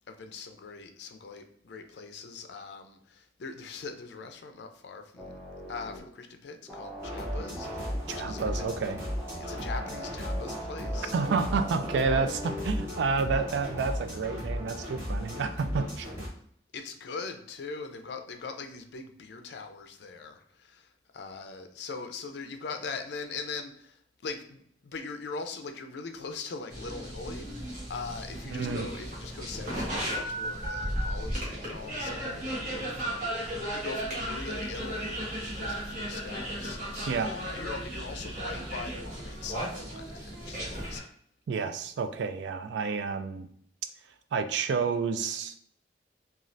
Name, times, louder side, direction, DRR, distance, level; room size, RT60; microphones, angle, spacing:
voice 1, 0.1-5.3 5.7-8.7 9.4-11.1 16.7-41.1, left 4 dB, 70° left, 6 dB, 0.4 m, -41 dB
sound 1, 5.2-6.0 6.7-12.9 13.3-14.0, equal, ahead, 0.6 m, -41 dB
sound 2, 7.0-16.3, equal, 15° right, 1.1 m, -36 dB
voice 2, 8.1-9.0 11.1-16.1 28.5-28.9 37.1-37.3 41.5-43.5 44.3-45.5, right 5 dB, 75° right, 9 dB, 0.3 m, -30 dB
sound 3, 26.7-41.0, right 1 dB, 45° right, 1.1 m, -35 dB
3.1 x 2.4 x 2.5 m, 0.65 s
head